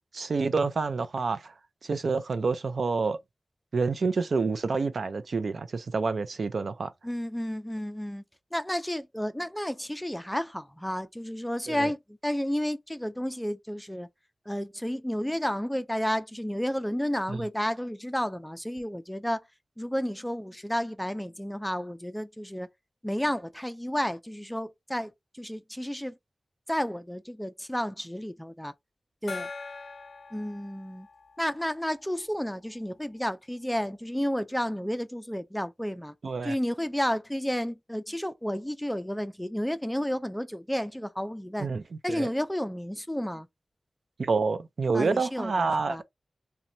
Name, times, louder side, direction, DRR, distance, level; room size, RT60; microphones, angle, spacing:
voice 1, 0.1-1.5 1.8-3.2 3.7-6.9 11.7-11.9 17.3-17.4 36.2-36.5 41.6-41.8 42.1-42.3 44.2-46.0, right 4 dB, 75° right, 0.4 m, -28 dB
voice 2, 7.0-8.2 8.5-12.0 12.2-14.1 14.5-19.4 19.8-22.7 23.0-26.2 26.7-28.7 29.2-29.5 30.3-31.1 31.4-36.1 36.4-41.7 42.0-43.5 44.9-46.0, equal, 5° left, 0.4 m, -31 dB
Gong, 29.3-32.5, left 4 dB, 75° left, 0.4 m, -43 dB
2.8 x 2.2 x 2.6 m
wide cardioid pair, 65°, 0 cm